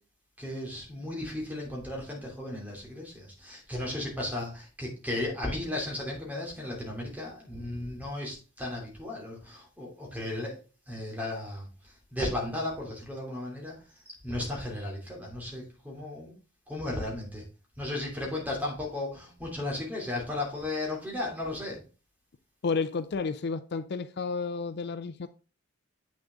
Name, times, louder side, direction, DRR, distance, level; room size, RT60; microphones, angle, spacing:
voice 1, 0.4-10.6 10.9-11.7 12.1-13.7 14.1-16.3 16.7-17.4 17.8-21.8, left 1 dB, 10° right, -1 dB, 2.9 m, -35 dB
voice 2, 22.6-25.3, left 4 dB, 55° left, 12 dB, 0.5 m, -31 dB
8.3 x 6.3 x 3.6 m, 0.33 s
head